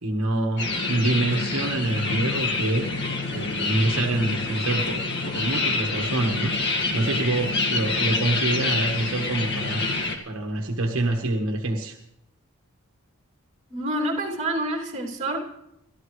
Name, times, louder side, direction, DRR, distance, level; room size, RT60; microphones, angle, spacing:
voice 1, 0.0-2.9 3.3-5.0 5.3-9.8 10.2-12.0, right 2 dB, 65° right, 2 dB, 1.4 m, -26 dB
sound 1, 0.6-10.2, left 3 dB, 50° left, 1.9 m, -27 dB
voice 2, 13.7-15.4, right 1 dB, 30° right, 0 dB, 2.8 m, -27 dB
29.0 x 13.5 x 3.2 m, 0.83 s
head